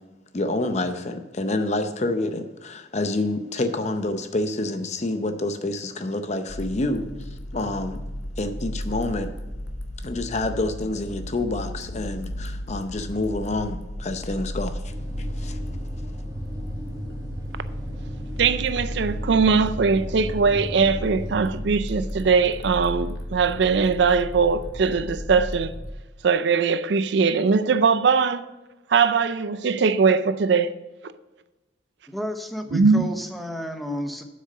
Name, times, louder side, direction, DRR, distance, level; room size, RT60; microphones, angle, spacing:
voice 1, 0.3-8.0 8.4-9.3 10.0-15.6, left 2 dB, 40° left, 0.6 m, -28 dB
sound 1, 6.5-25.9, equal, 75° left, 1.2 m, -34 dB
sound 2, 14.9-21.6, equal, 20° right, 1.9 m, -36 dB
voice 2, 18.4-25.7 26.2-28.5 28.9-30.7 32.7-33.1, right 5 dB, 65° right, 0.4 m, -21 dB
voice 3, 32.1-34.2, equal, ahead, 0.7 m, -32 dB
7.9 x 6.3 x 5.4 m
head